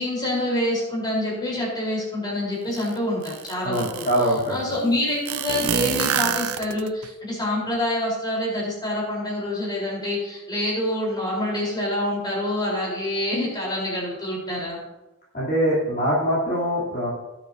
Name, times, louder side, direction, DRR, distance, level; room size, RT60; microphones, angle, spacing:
voice 1, 0.0-4.1 4.5-14.8, left 1 dB, 20° left, -5 dB, 3.8 m, -26 dB
sound 1, 2.7-2.8 3.2-4.4 5.3-7.1, right 9 dB, 80° right, 0.6 m, -26 dB
voice 2, 3.6-4.7 15.3-17.1, equal, 40° left, -7 dB, 2.9 m, -23 dB
18.5 x 7.6 x 2.7 m, 1.0 s
head